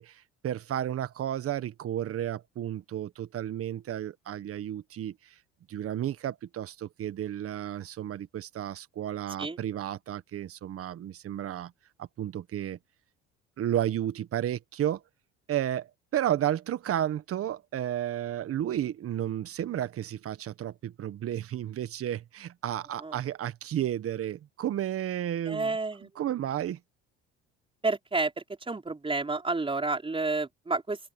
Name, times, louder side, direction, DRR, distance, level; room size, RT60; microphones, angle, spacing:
voice 1, 0.0-5.1 5.7-11.7 12.0-12.8 13.6-15.0 15.5-26.8, right 11 dB, 50° right, 1.6 m, -32 dB
voice 2, 25.5-26.1 27.8-28.3 28.7-31.1, right 3 dB, 20° right, 5.3 m, -30 dB
open air
supercardioid pair, 80°, 29 cm